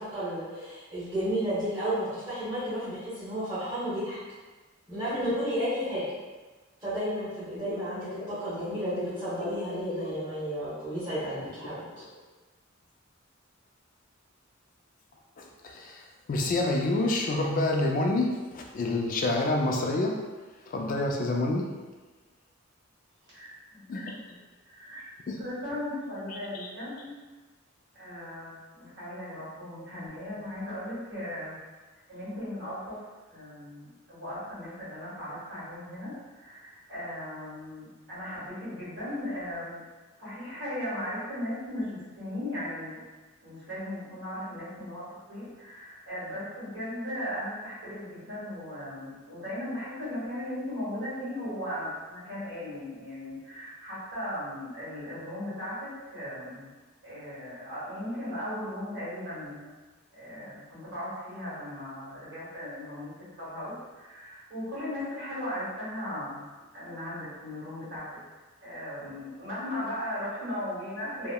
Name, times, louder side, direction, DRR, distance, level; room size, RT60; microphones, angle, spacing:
voice 1, 0.1-4.2 4.9-6.0 6.8-11.9, equal, 20° right, -15 dB, 0.9 m, -32 dB
voice 2, 7.6-8.3 8.6-10.5 15.4-20.2 20.7-21.7 23.9-24.2 25.3-25.4 26.3-26.7 27.0-27.1, left 2 dB, 40° left, 1 dB, 0.3 m, -29 dB
voice 3, 23.3-24.3 24.6-25.0 25.4-26.9 27.9-31.6 32.1-33.0 33.3-39.8 40.2-43.0 43.4-56.7 57.0-59.7 60.1-66.4 66.7-68.1 68.6-71.3, left 1 dB, 70° right, -10 dB, 1.5 m, -37 dB
2.8 x 2.0 x 2.2 m, 1.3 s
head